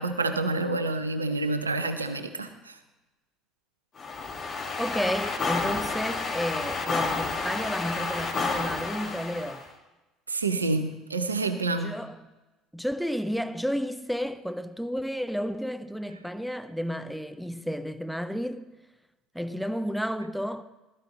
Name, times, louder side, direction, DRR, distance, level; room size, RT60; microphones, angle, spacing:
voice 1, 0.0-2.7 10.3-11.9, right 3 dB, 85° right, 0.7 m, -28 dB
sound 1, 4.0-9.7, left 4 dB, 35° left, 1.8 m, -30 dB
voice 2, 4.8-9.7 11.8-12.3 12.7-18.7 19.3-20.6, equal, ahead, 0.6 m, -32 dB
15.5 x 13.0 x 3.1 m
figure-of-eight pair, 60°, 0 cm